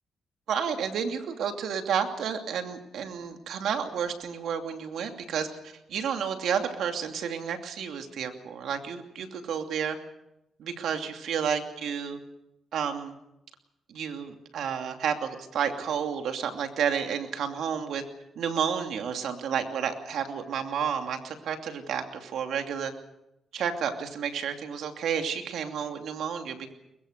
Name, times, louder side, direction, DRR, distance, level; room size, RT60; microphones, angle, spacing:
voice 1, 0.5-10.0 10.6-12.2 12.7-13.1 13.9-18.0 18.4-22.9 23.5-26.7, right 7 dB, 80° right, 5 dB, 2.8 m, -31 dB
22.5 x 21.5 x 6.7 m, 0.86 s
cardioid pair, 75°, 0 cm